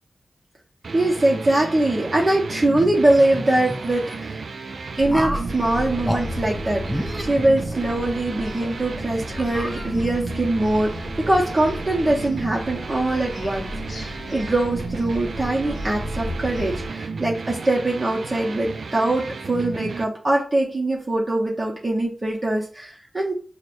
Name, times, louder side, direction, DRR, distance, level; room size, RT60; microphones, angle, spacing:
sound 1, 0.8-20.0, right 4 dB, 75° right, 0.3 m, -33 dB
voice 1, 0.9-4.4 5.0-23.3, right 1 dB, 35° right, -3 dB, 0.8 m, -22 dB
sound 2, 2.7-4.2 5.1-5.5 6.0-6.2 6.8-8.1 8.6-8.7 9.4-10.3, equal, ahead, 0.4 m, -31 dB
sound 3, 5.0-16.9, left 1 dB, 60° left, 0.6 m, -34 dB
6.1 x 2.1 x 2.6 m, 0.40 s
wide cardioid pair, 85°, 0 cm